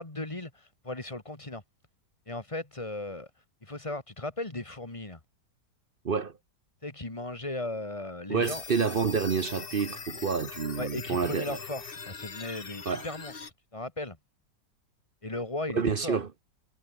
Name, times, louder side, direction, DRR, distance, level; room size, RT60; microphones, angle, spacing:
voice 1, 0.0-1.6 2.3-3.3 3.6-5.2 6.8-8.6 10.8-13.4 13.7-14.2 15.2-16.2, left 2 dB, 20° left, 2.2 m, -36 dB
voice 2, 8.3-11.6 12.9-13.1 15.7-16.3, right 5 dB, 40° right, 0.8 m, -28 dB
sound 1, 8.4-13.5, left 5 dB, 35° left, 1.6 m, -42 dB
omnidirectional pair, 1.9 m